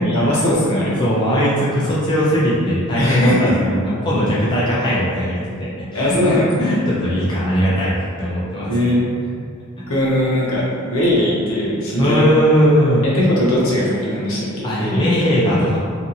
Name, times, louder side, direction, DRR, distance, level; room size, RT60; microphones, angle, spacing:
voice 1, 0.0-0.9 3.0-3.5 5.9-6.7 8.7-9.0 9.9-10.6 10.9-12.3 13.1-15.0, left 1 dB, 70° left, -6 dB, 0.7 m, -19 dB
voice 2, 0.7-9.0 9.8-9.9 12.0-13.1 14.6-15.8, equal, 20° left, -8 dB, 0.4 m, -19 dB
2.7 x 2.4 x 2.6 m, 2.2 s
head